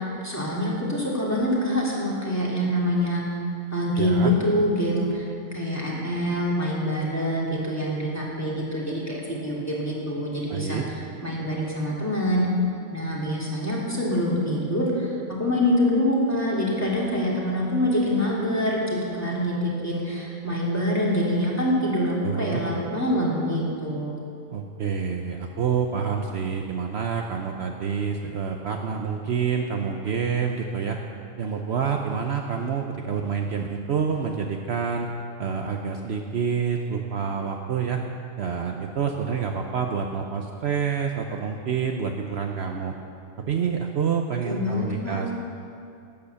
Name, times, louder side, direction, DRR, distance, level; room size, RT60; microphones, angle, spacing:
voice 1, 0.0-3.2 3.7-5.3 5.5-12.5 12.9-15.1 15.4-24.1 44.4-45.2, equal, 10° left, -5 dB, 2.5 m, -25 dB
voice 2, 4.0-4.3 10.5-10.8 22.2-22.6 24.5-31.0 31.4-35.1 35.4-38.0 38.4-42.9 43.5-45.3, right 6 dB, 60° right, 3 dB, 0.9 m, -27 dB
12.0 x 9.1 x 6.8 m, 2.5 s
omnidirectional pair, 1.4 m